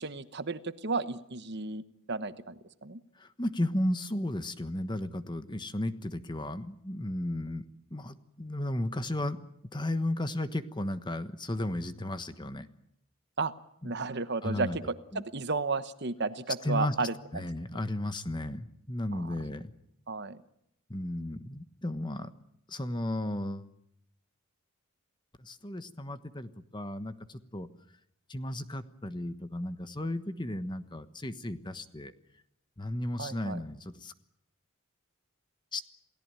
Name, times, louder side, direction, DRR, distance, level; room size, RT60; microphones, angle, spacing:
voice 1, 0.0-3.0 13.4-13.5 13.8-17.5 19.1-19.3 20.1-20.4 33.2-33.6, right 3 dB, 50° right, 12 dB, 1.1 m, -33 dB
voice 2, 3.2-7.6 7.9-9.4 9.7-12.7 13.8-13.9 14.4-14.8 15.1-15.2 16.6-16.9 17.3-19.7 20.9-22.3 22.7-23.7 25.4-27.7 28.3-32.1 32.8-34.1 35.7-35.8, left 1 dB, 20° left, 11 dB, 1.3 m, -34 dB
28.5 x 17.5 x 9.0 m, 0.77 s
head